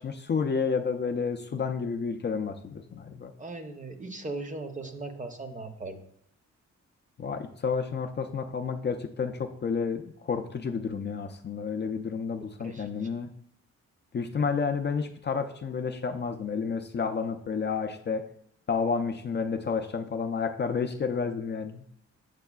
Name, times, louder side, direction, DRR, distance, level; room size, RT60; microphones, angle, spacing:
voice 1, 0.0-3.3 7.2-13.3 14.1-18.2 18.7-21.8, left 5 dB, 35° left, 6 dB, 0.4 m, -30 dB
voice 2, 3.4-6.0 12.6-12.9, right 2 dB, 25° right, 6 dB, 0.7 m, -38 dB
8.1 x 6.4 x 2.3 m, 0.69 s
wide cardioid pair, 120°, 29 cm